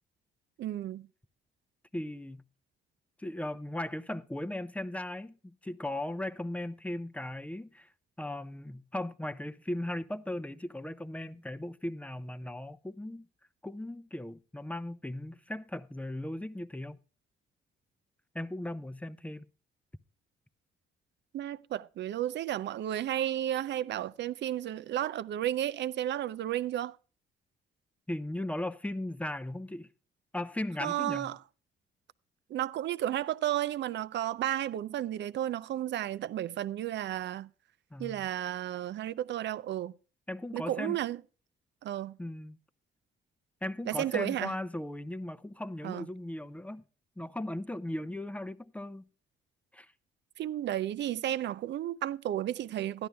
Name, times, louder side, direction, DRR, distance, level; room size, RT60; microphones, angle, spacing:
voice 1, 0.6-1.1 21.3-27.0 30.8-31.4 32.5-37.5 38.0-39.9 40.5-41.2 41.8-42.2 43.9-44.5 45.8-46.1 50.4-53.1, right 12 dB, 65° right, 0.5 m, -33 dB
voice 2, 1.9-2.4 3.2-7.9 8.2-13.3 13.6-17.0 18.3-19.4 28.1-29.9 30.3-31.3 37.9-38.3 40.3-41.0 42.2-42.6 43.6-46.8 47.2-49.0 49.7-49.9, left 1 dB, 5° left, 0.5 m, -37 dB
12.5 x 10.5 x 3.4 m
cardioid pair, 90°, 20 cm